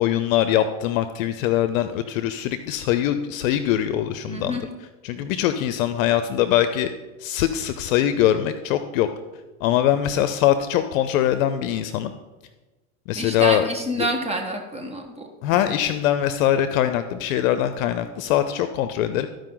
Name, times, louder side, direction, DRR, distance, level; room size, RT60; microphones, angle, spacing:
voice 1, 0.0-4.6 5.0-6.9 7.2-9.1 9.6-12.1 13.1-13.7 14.0-14.1 15.4-19.3, left 11 dB, 70° left, 11 dB, 0.7 m, -22 dB
voice 2, 4.3-4.6 13.1-15.6, right 1 dB, 15° right, 2 dB, 1.2 m, -28 dB
13.5 x 5.1 x 3.8 m, 1.2 s
supercardioid pair, 115°, 42 cm